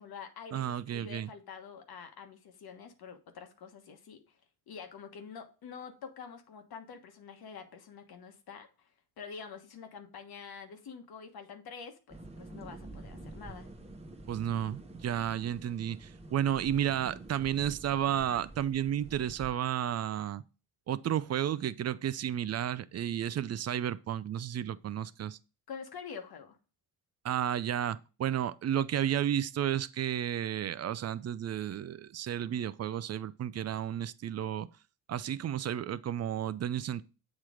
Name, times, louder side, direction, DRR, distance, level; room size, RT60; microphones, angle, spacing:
voice 1, 0.0-4.4 4.7-8.9 9.2-13.7 25.7-26.6, left 6 dB, 65° left, 1.2 m, -47 dB
voice 2, 0.5-1.3 14.3-20.4 20.9-25.4 27.2-34.7 35.1-37.0, right 10 dB, 40° right, 0.4 m, -32 dB
sound 1, 12.1-19.5, right 2 dB, 15° right, 1.0 m, -48 dB
7.4 x 3.1 x 4.9 m
cardioid pair, 70°, 39 cm